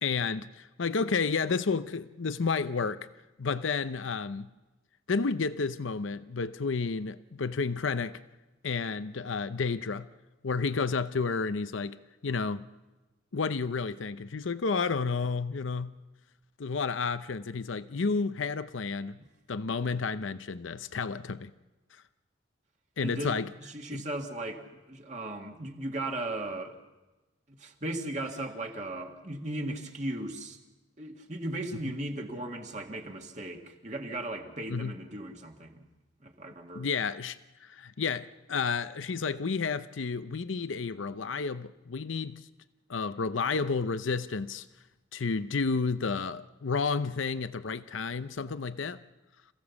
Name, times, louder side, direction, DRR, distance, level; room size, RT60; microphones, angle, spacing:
voice 1, 0.0-3.1 3.4-4.5 5.1-8.2 8.6-10.1 10.4-12.0 12.2-12.7 13.3-15.9 16.6-19.2 19.5-21.5 23.0-23.5 23.9-24.0 34.7-34.9 36.7-42.4 42.9-44.6 45.1-49.0, left 4 dB, 85° left, 0.7 m, -31 dB
voice 2, 23.0-23.3 23.6-26.8 27.5-30.6 31.0-35.9 36.2-36.9, right 1 dB, 35° right, 1.8 m, -37 dB
27.5 x 16.0 x 7.1 m
head